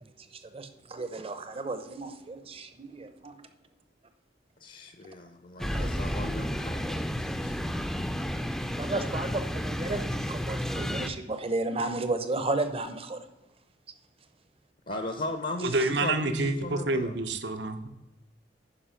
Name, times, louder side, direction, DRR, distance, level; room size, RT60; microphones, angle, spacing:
voice 1, 0.0-3.3 5.7-6.1 8.8-13.2 15.7-15.9, right 2 dB, 30° right, 9 dB, 0.8 m, -33 dB
voice 2, 4.6-7.6 14.9-17.1, left 2 dB, 50° left, 7 dB, 0.8 m, -37 dB
sound 1, 5.6-11.1, equal, ahead, 0.5 m, -31 dB
voice 3, 15.6-17.9, right 2 dB, 65° right, 9 dB, 0.8 m, -28 dB
10.0 x 5.3 x 5.8 m, 1.0 s
head